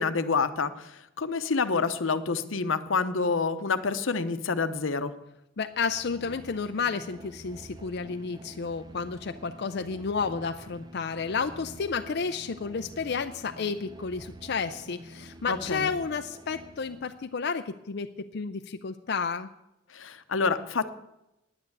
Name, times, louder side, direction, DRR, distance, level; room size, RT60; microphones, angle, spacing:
voice 1, 0.0-5.1 15.5-15.9 19.9-20.9, left 4 dB, 90° left, 11 dB, 0.9 m, -28 dB
voice 2, 5.6-19.5, left 5 dB, 60° left, 7 dB, 0.5 m, -31 dB
sound 1, 5.7-17.3, right 1 dB, 20° right, 0.8 m, -48 dB
9.8 x 9.7 x 7.9 m, 0.91 s
head